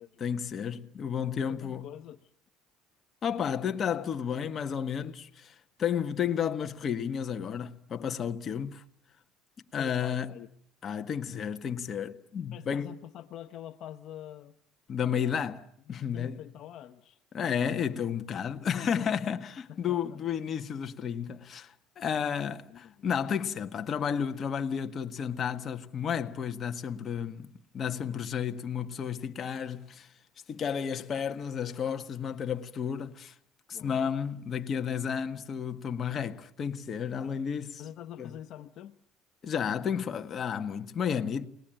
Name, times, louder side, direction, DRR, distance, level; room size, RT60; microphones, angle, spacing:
voice 1, 0.2-1.9 3.2-8.8 9.7-10.3 10.8-12.9 14.9-16.4 17.3-30.1 30.5-33.3 33.7-37.8 38.2-38.3 39.4-41.5, left 7 dB, 35° left, 1.5 m, -32 dB
voice 2, 1.5-2.3 9.8-10.5 12.5-14.5 15.1-15.4 15.9-17.2 19.7-20.2 22.7-23.1 33.7-34.1 37.8-39.0, left 11 dB, 55° left, 1.0 m, -46 dB
29.5 x 20.5 x 9.1 m
cardioid pair, 120°, 0 cm